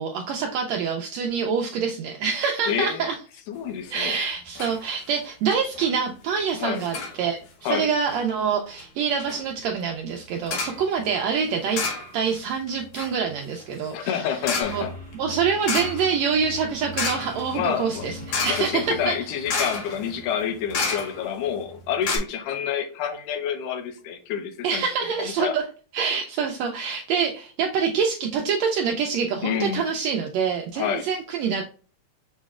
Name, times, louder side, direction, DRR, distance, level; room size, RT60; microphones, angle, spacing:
voice 1, 0.0-3.1 3.9-11.8 12.1-14.3 14.7-14.8 15.2-19.1 24.6-25.6 25.9-31.6, right 6 dB, 85° right, 2 dB, 1.5 m, -26 dB
voice 2, 2.7-3.1 3.5-4.2 6.6-6.8 7.6-7.9 13.9-14.9 17.5-18.1 18.5-24.8 25.2-25.6 29.4-29.9 30.8-31.1, left 8 dB, 85° left, 7 dB, 2.4 m, -28 dB
sound 1, 3.9-4.2 4.5-4.8 5.1-5.2 5.5-5.9 6.8-7.2 7.9-8.2 8.8-8.9 9.2-9.4 10.5-10.8 11.7-12.4 12.7-21.4 21.7-21.8 22.0-22.2, left 4 dB, 60° left, 1.7 m, -31 dB
sound 2, 14.6-19.7, equal, 40° right, 2.3 m, -41 dB
6.4 x 3.1 x 2.3 m, 0.39 s
omnidirectional pair, 3.7 m